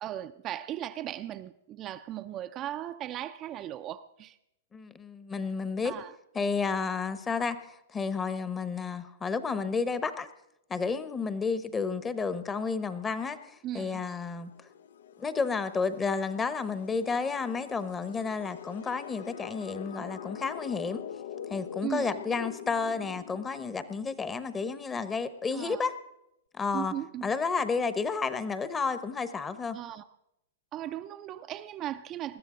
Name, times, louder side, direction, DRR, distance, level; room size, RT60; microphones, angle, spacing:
voice 1, 0.0-4.4 5.8-6.1 13.6-14.0 20.0-20.2 21.8-22.2 25.5-25.8 26.7-27.3 29.7-30.1 30.7-32.4, right 12 dB, 30° right, 0.5 m, -37 dB
voice 2, 4.7-6.0 6.3-10.3 10.7-14.5 15.2-21.0 21.5-25.9 26.6-26.9 27.2-29.8, left 5 dB, 15° left, 0.9 m, -31 dB
sound 1, 13.9-24.4, left 8 dB, 70° left, 0.4 m, -44 dB
20.5 x 13.5 x 3.8 m
hypercardioid pair, 120°, 0 cm